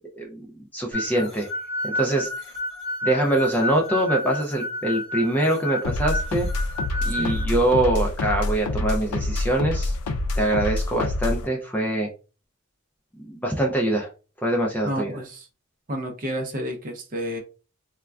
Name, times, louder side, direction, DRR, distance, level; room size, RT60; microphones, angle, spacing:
voice 1, 0.1-1.5 1.8-2.3 3.0-6.5 7.0-9.9 10.4-12.1 13.2-14.1 14.4-15.2, right 1 dB, 5° left, -1 dB, 0.3 m, -24 dB
sound 1, 0.9-7.4, left 1 dB, 25° left, 1.5 m, -31 dB
sound 2, 5.8-11.5, left 2 dB, 80° left, 0.4 m, -27 dB
voice 2, 14.8-15.5 15.9-17.4, equal, 40° right, 3 dB, 0.6 m, -30 dB
3.4 x 2.2 x 2.2 m, 0.34 s
head